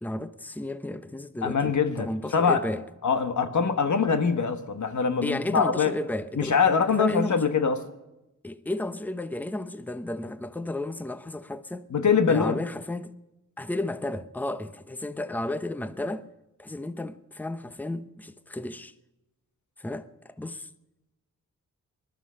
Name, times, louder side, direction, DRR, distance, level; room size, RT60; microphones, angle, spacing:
voice 1, 0.0-2.8 5.2-6.6 6.9-7.4 8.4-11.9 12.3-13.1 13.6-16.3 16.6-18.9 19.8-20.7, left 1 dB, 5° left, 0.8 m, -33 dB
voice 2, 1.4-2.6 3.0-5.9 6.4-7.8 11.9-12.6, left 5 dB, 60° left, 1.3 m, -23 dB
20.0 x 12.0 x 5.6 m
cardioid pair, 60°, 33 cm